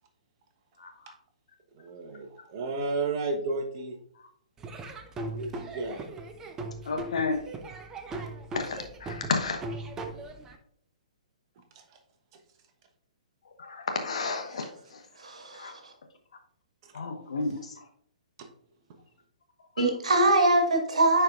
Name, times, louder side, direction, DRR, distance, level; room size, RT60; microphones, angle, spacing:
voice 1, 1.8-4.0 5.2-6.0 11.7-11.8 16.8-16.9 18.4-18.5, right 3 dB, 35° right, 5 dB, 1.1 m, -33 dB
Laughter / Drum, 4.6-10.6, right 2 dB, 15° right, 0.6 m, -39 dB
voice 2, 6.8-7.4 8.5-9.6 13.6-15.0 15.5-15.7 16.9-17.8 19.8-19.9, left 4 dB, 60° left, 4 dB, 1.0 m, -32 dB
voice 3, 15.2-15.7 19.8-21.2, right 2 dB, 65° right, 2 dB, 1.7 m, -23 dB
10.0 x 4.6 x 2.5 m, 0.64 s
figure-of-eight pair, 120°, 4 cm